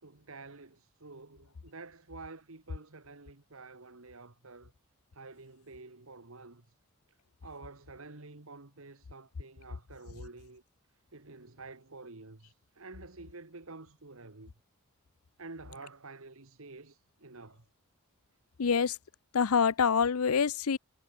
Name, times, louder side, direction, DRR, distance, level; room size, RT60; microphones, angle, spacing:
voice 1, 0.0-4.7 5.1-6.8 7.4-10.6 11.1-14.5 15.4-17.7, right 3 dB, 70° right, 1.7 m, -49 dB
voice 2, 18.6-19.0 19.3-20.8, left 6 dB, 85° left, 0.6 m, -26 dB
head